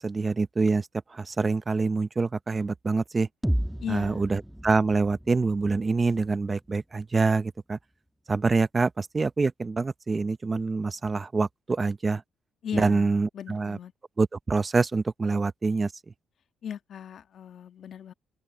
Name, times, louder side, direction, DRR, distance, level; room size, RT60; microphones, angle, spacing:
voice 1, 0.0-3.3 3.9-7.8 8.3-12.2 12.7-13.8 14.2-15.9, right 3 dB, 30° right, 0.7 m, -26 dB
sound 1, 3.4-7.4, equal, 5° right, 2.0 m, -34 dB
voice 2, 3.8-4.3 12.6-13.9 16.6-18.1, left 8 dB, 60° left, 1.4 m, -37 dB
open air
cardioid pair, 90°, 0 cm